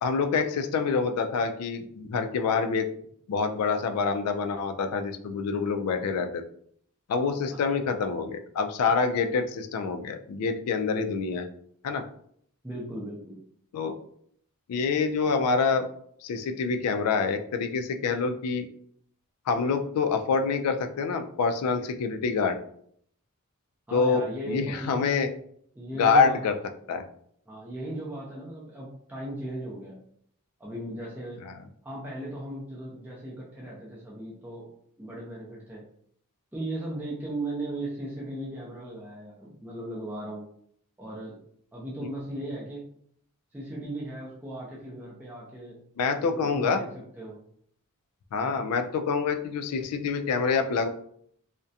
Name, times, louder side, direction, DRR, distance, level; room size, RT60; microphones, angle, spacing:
voice 1, 0.0-2.9 3.3-6.4 7.1-11.5 11.8-12.1 13.7-13.9 14.7-15.9 16.2-18.7 19.5-22.6 23.9-25.3 26.0-26.6 26.9-27.0 46.0-46.8 48.3-50.9, left 5 dB, 85° left, 7 dB, 0.3 m, -26 dB
voice 2, 12.6-13.4 23.9-25.1 25.7-26.4 27.5-30.0 30.6-31.4 31.8-34.7 35.0-35.9 36.5-40.5 41.0-41.4 41.7-42.9 43.5-45.8 46.2-47.4 48.4-48.6, right 1 dB, 10° right, -6 dB, 0.5 m, -37 dB
2.3 x 2.1 x 2.6 m, 0.65 s
head